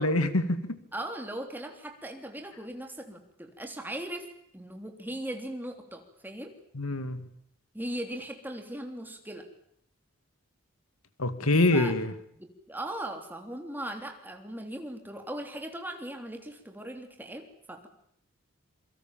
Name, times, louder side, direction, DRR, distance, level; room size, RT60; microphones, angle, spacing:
voice 1, 0.0-0.8 6.7-7.2 11.2-12.1, left 2 dB, 85° left, 11 dB, 2.2 m, -25 dB
voice 2, 0.9-4.3 4.5-6.5 7.7-9.5 11.7-11.9 12.4-17.9, right 1 dB, 10° right, 4 dB, 3.3 m, -39 dB
27.5 x 24.0 x 7.4 m, 0.70 s
head